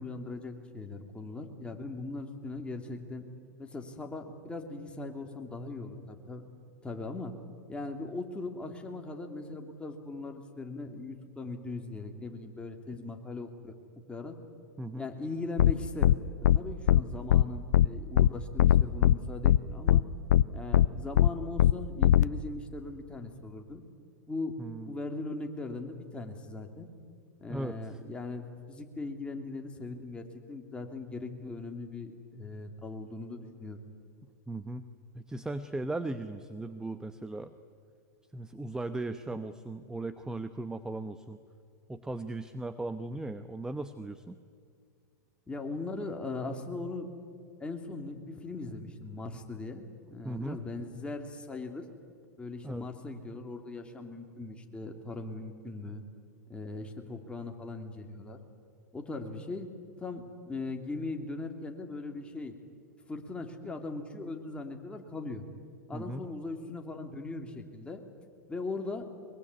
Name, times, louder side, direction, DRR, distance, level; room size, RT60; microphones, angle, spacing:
voice 1, 0.0-3.3 3.6-6.4 6.8-7.3 7.7-13.7 14.1-14.4 15.0-16.1 16.5-20.0 20.5-23.8 24.3-24.5 24.9-26.9 27.4-33.8 45.5-47.1 47.6-51.8 52.4-56.0 56.5-58.4 58.9-59.7 60.0-62.5 63.1-65.5 65.9-68.0 68.5-69.1, left 3 dB, 10° left, 3 dB, 3.0 m, -39 dB
sound 1, 15.6-15.7 16.0-16.1 16.4-16.6 16.9-17.0 17.3-17.4 17.7-17.9 18.2-18.3 18.6-19.1 19.4-19.6 19.9-20.0 20.3-20.4 20.7-20.9 21.2-21.3 21.6-21.7 22.0-22.2, left 11 dB, 75° left, 0.6 m, -20 dB
voice 2, 24.6-24.9 27.5-28.0 34.5-34.8 35.1-37.5 38.3-41.4 41.9-44.4 50.2-50.6 52.6-52.9 65.9-66.3, right 2 dB, 5° right, 11 dB, 0.9 m, -37 dB
23.0 x 22.5 x 9.7 m, 2.2 s
hypercardioid pair, 105°, 9 cm